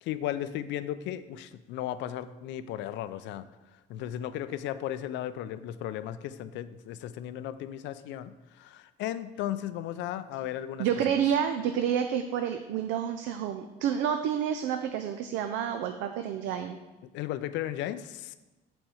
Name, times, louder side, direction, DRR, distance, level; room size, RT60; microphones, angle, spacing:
voice 1, 0.0-3.5 3.9-10.9 17.1-18.3, left 12 dB, 75° left, 13 dB, 0.4 m, -35 dB
voice 2, 10.8-16.8, right 8 dB, 85° right, 7 dB, 0.4 m, -29 dB
6.1 x 4.3 x 4.9 m, 1.1 s
cardioid pair, 90°, 19 cm